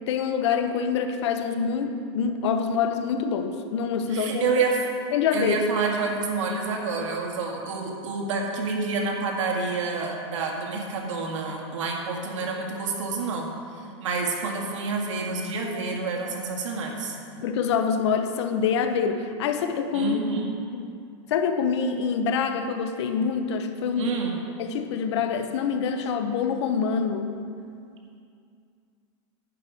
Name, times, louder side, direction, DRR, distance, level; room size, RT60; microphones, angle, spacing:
voice 1, 0.1-4.5 5.1-5.6 17.4-20.2 20.7-20.9 21.3-24.1 24.6-27.4, left 6 dB, 65° left, 7 dB, 0.9 m, -25 dB
voice 2, 4.1-4.8 5.3-13.5 13.8-17.2 19.9-20.6 24.0-24.4, right 4 dB, 90° right, 0 dB, 1.9 m, -28 dB
11.0 x 4.9 x 7.8 m, 2.3 s
supercardioid pair, 165°, 15 cm